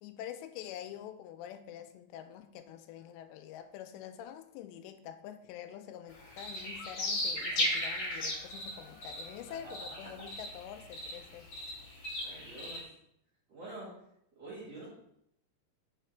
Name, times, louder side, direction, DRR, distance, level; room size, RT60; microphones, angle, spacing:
voice 1, 0.0-11.5, left 10 dB, 85° left, 9 dB, 2.7 m, -46 dB
sound 1, 6.1-12.8, left 1 dB, 45° left, 1.5 m, -36 dB
voice 2, 12.2-12.9 13.5-13.9 14.4-14.9, right 2 dB, 50° right, -7 dB, 2.3 m, -46 dB
5.5 x 4.8 x 4.4 m, 0.76 s
omnidirectional pair, 4.9 m